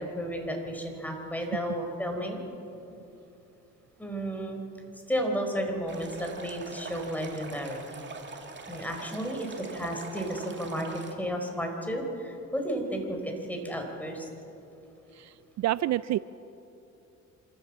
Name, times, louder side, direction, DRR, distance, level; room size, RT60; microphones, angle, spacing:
voice 1, 0.0-2.4 2.9-3.0 4.0-4.6 5.1-7.8 8.7-14.3, equal, 5° left, 3 dB, 4.3 m, -33 dB
Stream, 5.9-11.1, right 3 dB, 40° right, 2.5 m, -43 dB
voice 2, 15.1-16.2, right 15 dB, 65° right, 17 dB, 0.4 m, -28 dB
26.0 x 14.0 x 7.4 m, 2.9 s
cardioid pair, 90°, 30 cm